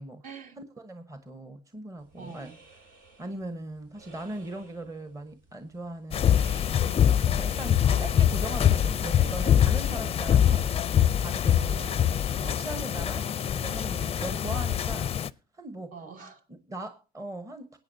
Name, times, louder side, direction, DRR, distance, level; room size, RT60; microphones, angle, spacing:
voice 1, 0.2-0.6 2.2-2.6 7.9-8.8 11.7-12.2 14.2-14.6 15.9-16.4, right 5 dB, 50° right, 5 dB, 2.1 m, -45 dB
voice 2, 0.8-2.5 3.2-6.4 6.8-10.7 11.0-11.9 12.4-13.3 13.5-15.1 15.6-15.9 16.5-17.8, right 1 dB, 20° right, 9 dB, 1.1 m, -39 dB
sound 1, 2.0-13.5, right 3 dB, 80° right, 7.2 m, -54 dB
sound 2, 6.1-15.3, left 9 dB, 35° left, 0.4 m, -24 dB
20.0 x 8.8 x 2.7 m, 0.30 s
cardioid pair, 110°, 17 cm